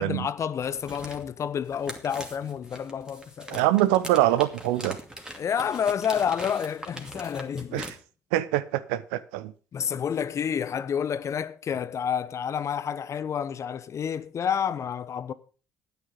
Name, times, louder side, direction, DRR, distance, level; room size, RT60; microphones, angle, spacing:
voice 1, 0.0-3.6 5.3-7.9 9.7-15.3, left 8 dB, 40° left, 1.0 m, -29 dB
sound 1, 0.6-7.9, right 1 dB, 10° right, 2.5 m, -41 dB
voice 2, 3.5-5.0 7.7-7.9 8.3-9.5, right 14 dB, 70° right, 0.7 m, -24 dB
12.5 x 9.3 x 5.2 m
figure-of-eight pair, 55°, 8 cm